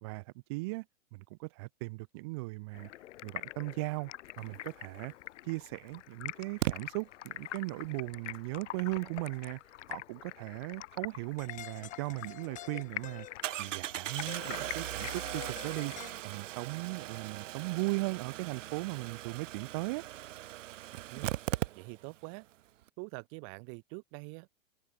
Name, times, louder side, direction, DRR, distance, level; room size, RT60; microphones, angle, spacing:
voice 1, 0.0-0.8 1.1-2.9 3.2-4.1 4.4-5.1 5.4-9.6 9.9-13.3 13.6-20.0, right 25 dB, 20° right, 0.4 m, -38 dB
Stream, 2.7-16.1, left 14 dB, 60° left, 1.3 m, -46 dB
Engine starting, 5.1-5.2 6.6-6.7 11.8-11.9 12.3-12.4 13.4-22.2 22.5-22.6 22.8-22.9, right 14 dB, 65° right, 0.8 m, -38 dB
sound 1, 11.4-13.6 14.3-16.3, left 11 dB, 20° left, 1.5 m, -48 dB
voice 2, 21.7-22.5 23.0-24.5, right 40 dB or more, 40° right, 3.9 m, -45 dB
hypercardioid pair, 140°, 41 cm